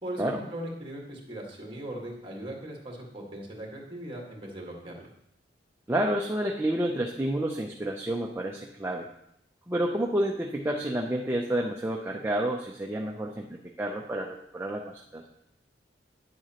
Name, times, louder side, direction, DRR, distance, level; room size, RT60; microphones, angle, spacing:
voice 1, 0.0-5.1, right 1 dB, 30° right, -1 dB, 1.7 m, -39 dB
voice 2, 5.9-9.1 9.7-15.3, right 1 dB, 15° right, 0 dB, 0.5 m, -30 dB
9.7 x 7.7 x 2.9 m, 0.77 s
head